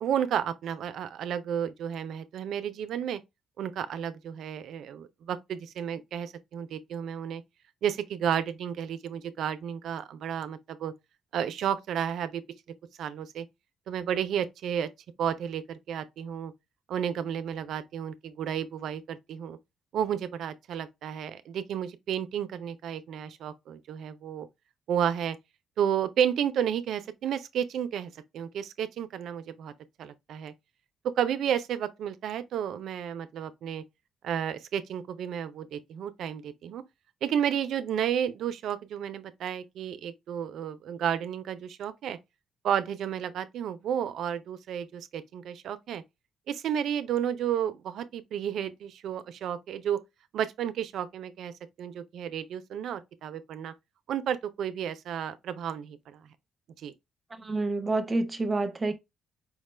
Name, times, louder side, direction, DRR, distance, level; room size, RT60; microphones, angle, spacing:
voice 1, 0.0-3.2 3.6-7.4 7.8-10.9 11.3-12.4 13.0-13.5 13.9-14.9 15.2-16.5 16.9-19.6 19.9-24.5 24.9-25.4 25.8-29.7 30.0-30.5 31.0-33.8 34.2-36.8 37.2-42.2 42.6-46.0 46.5-50.0 50.3-51.5 51.8-53.7 54.1-56.2 56.8-56.9, right 9 dB, 75° right, 0.4 m, -32 dB
voice 2, 57.4-58.9, right 2 dB, 25° right, 0.6 m, -28 dB
4.6 x 2.2 x 3.1 m
cardioid pair, 90°, 0 cm